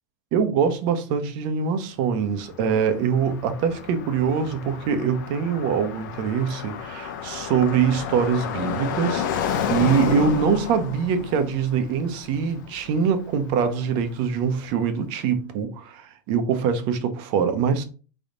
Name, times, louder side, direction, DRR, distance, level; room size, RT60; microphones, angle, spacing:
voice 1, 0.3-17.8, right 6 dB, 55° right, 0.9 m, -23 dB
Car passing by, 2.2-14.2, left 7 dB, 75° left, 0.8 m, -31 dB
3.9 x 3.6 x 3.9 m
supercardioid pair, 130°, 10 cm